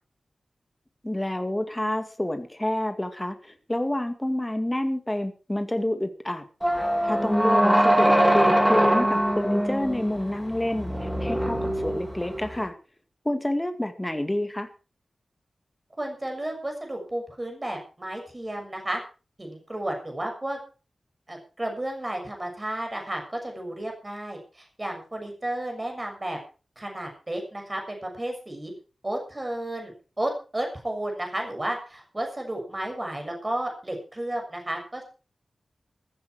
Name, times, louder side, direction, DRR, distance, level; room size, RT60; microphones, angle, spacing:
voice 1, 1.0-6.4 7.0-12.7 13.3-14.7, left 1 dB, 15° left, 7 dB, 2.0 m, -28 dB
sound 1, 6.6-12.6, equal, 5° right, 2.8 m, -23 dB
voice 2, 16.0-19.0 19.4-20.6 21.3-26.4 26.8-28.7 29.0-35.0, right 1 dB, 20° right, 3 dB, 6.5 m, -32 dB
14.5 x 14.0 x 4.7 m, 0.35 s
wide cardioid pair, 115°, 0 cm